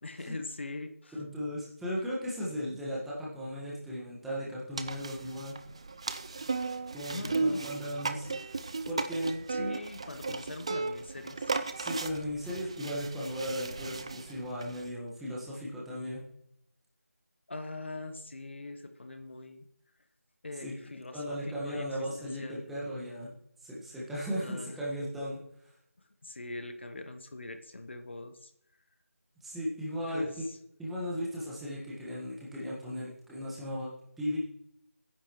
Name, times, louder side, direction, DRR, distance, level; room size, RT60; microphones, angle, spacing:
voice 1, 0.0-1.2 7.1-7.6 9.5-11.5 17.5-19.6 20.4-21.9 22.2-22.6 24.4-24.8 26.2-28.5 30.1-30.6, left 2 dB, 50° left, 7 dB, 1.3 m, -42 dB
voice 2, 1.2-5.6 6.9-8.3 8.9-9.4 11.7-16.2 20.5-20.7 21.1-23.3 23.6-25.7 29.4-30.4 30.8-33.9 34.2-34.4, equal, ahead, -7 dB, 1.6 m, -36 dB
sound 1, 4.7-14.9, right 3 dB, 25° right, 0.5 m, -36 dB
21.5 x 10.5 x 3.2 m, 0.77 s
figure-of-eight pair, 165°, 8 cm